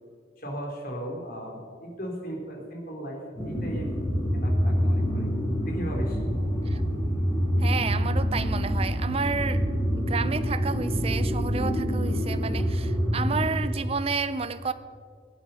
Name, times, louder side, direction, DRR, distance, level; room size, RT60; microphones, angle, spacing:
voice 1, 0.4-3.9 4.3-5.3 5.7-6.2, equal, 55° left, 0 dB, 3.3 m, -37 dB
sound 1, 3.4-13.5, equal, 20° left, 4.7 m, -26 dB
voice 2, 7.6-9.6 9.9-14.7, right 5 dB, 35° right, 12 dB, 0.5 m, -31 dB
22.0 x 8.6 x 5.5 m, 2.1 s
head